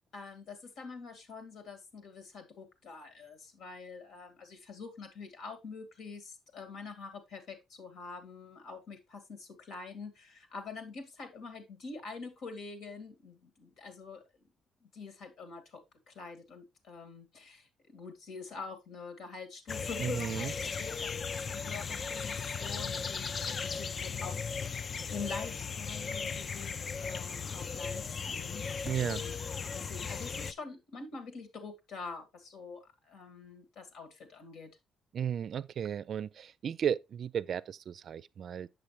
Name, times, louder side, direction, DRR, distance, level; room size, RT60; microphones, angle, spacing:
voice 1, 0.1-14.2 14.8-29.3 29.7-34.7, left 4 dB, 75° left, 2.2 m, -46 dB
sound 1, 19.7-30.5, left 5 dB, 45° left, 0.4 m, -37 dB
voice 2, 20.0-20.5 28.8-29.2 35.1-38.7, right 8 dB, 60° right, 0.4 m, -34 dB
7.8 x 6.8 x 3.1 m
cardioid pair, 90°, 0 cm